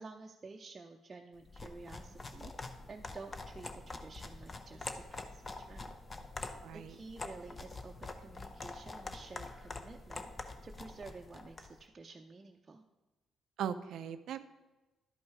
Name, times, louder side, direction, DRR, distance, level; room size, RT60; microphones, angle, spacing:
voice 1, 0.0-5.9 6.7-12.8, right 3 dB, 30° right, 1 dB, 0.6 m, -51 dB
sound 1, 1.4-11.8, left 3 dB, 30° left, 0.8 m, -46 dB
voice 2, 6.6-6.9 13.6-14.4, right 8 dB, 75° right, 10 dB, 0.4 m, -39 dB
11.5 x 5.3 x 4.7 m, 1.1 s
cardioid pair, 90°, 0 cm